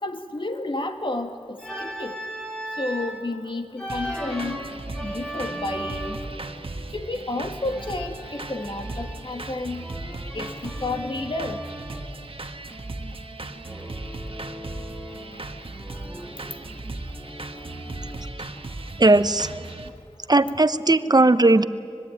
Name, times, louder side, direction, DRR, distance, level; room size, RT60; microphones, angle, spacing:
voice 1, 0.0-2.2 2.8-4.6 5.0-6.2 6.9-9.9 10.3-11.6, left 2 dB, 50° left, 5 dB, 2.1 m, -31 dB
Organ, 1.6-3.2 3.8-6.4 7.7-9.4 9.8-12.1 13.6-15.5 15.8-18.5, equal, 10° left, 4.9 m, -37 dB
sound 1, 3.9-19.9, right 2 dB, 60° right, 1.5 m, -37 dB
voice 2, 19.0-19.5 20.3-21.6, right 2 dB, 40° right, 12 dB, 0.9 m, -17 dB
25.0 x 21.0 x 9.2 m, 2.4 s
wide cardioid pair, 45°, 11 cm